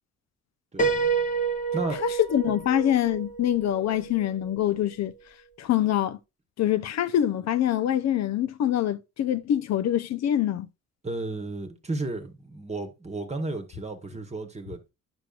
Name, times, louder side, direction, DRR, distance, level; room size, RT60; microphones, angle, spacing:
Piano, 0.8-4.5, right 5 dB, 25° left, 0.9 m, -29 dB
voice 1, 2.3-5.1 5.6-6.2 6.6-10.7, left 11 dB, 60° left, 0.6 m, -25 dB
voice 2, 11.0-14.8, right 2 dB, 20° right, 1.2 m, -33 dB
9.0 x 6.2 x 2.4 m
cardioid pair, 90°, 30 cm